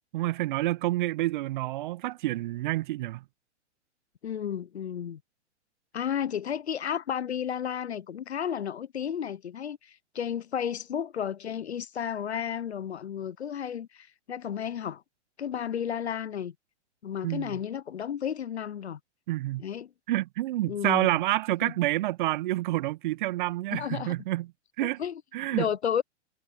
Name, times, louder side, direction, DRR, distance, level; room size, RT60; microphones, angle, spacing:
voice 1, 0.1-3.2 17.2-17.6 19.3-19.6 20.1-24.5 24.8-25.0 25.3-25.7, right 16 dB, 40° right, 1.7 m, -28 dB
voice 2, 4.2-5.2 5.9-15.0 15.4-16.5 17.0-19.0 19.6-19.9 20.7-21.1 21.6-21.7 23.7-24.1 25.0-25.2 25.5-26.0, left 8 dB, 65° left, 1.1 m, -32 dB
figure-of-eight pair, 110°, 36 cm